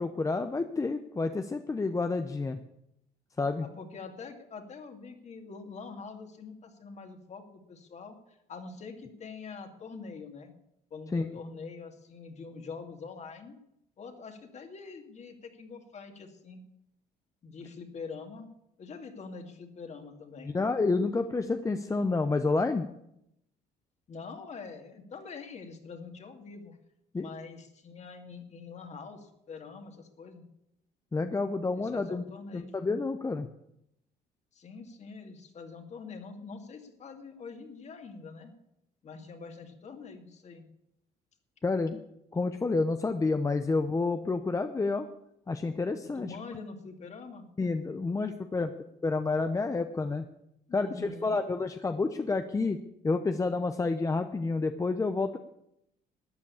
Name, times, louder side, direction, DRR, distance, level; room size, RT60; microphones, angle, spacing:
voice 1, 0.0-2.6 3.4-3.7 11.1-11.3 20.5-22.9 27.1-27.3 31.1-32.2 32.5-33.5 41.6-42.0 42.3-45.1 45.5-46.4 47.6-48.7 49.0-50.3 50.7-52.8 53.0-55.4, left 3 dB, 20° left, 8 dB, 0.8 m, -29 dB
voice 2, 3.6-10.5 10.9-13.6 14.0-16.6 17.4-18.5 18.8-20.6 24.1-26.8 27.1-30.4 31.7-32.8 34.5-38.5 39.0-40.7 46.2-47.5 50.7-51.4, left 4 dB, 40° left, 6 dB, 2.4 m, -45 dB
13.0 x 9.3 x 8.5 m, 0.80 s
cardioid pair, 110°, 17 cm